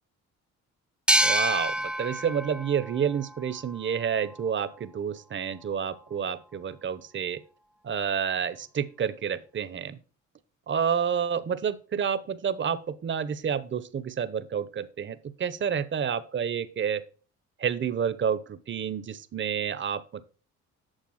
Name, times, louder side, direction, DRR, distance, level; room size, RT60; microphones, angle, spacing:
sound 1, 1.1-4.4, equal, 5° right, 0.4 m, -28 dB
voice 1, 1.2-7.4 7.8-10.0 10.7-17.1 17.6-20.2, right 7 dB, 40° right, 13 dB, 0.9 m, -29 dB
9.1 x 6.7 x 5.8 m, 0.38 s
cardioid pair, 90°, 30 cm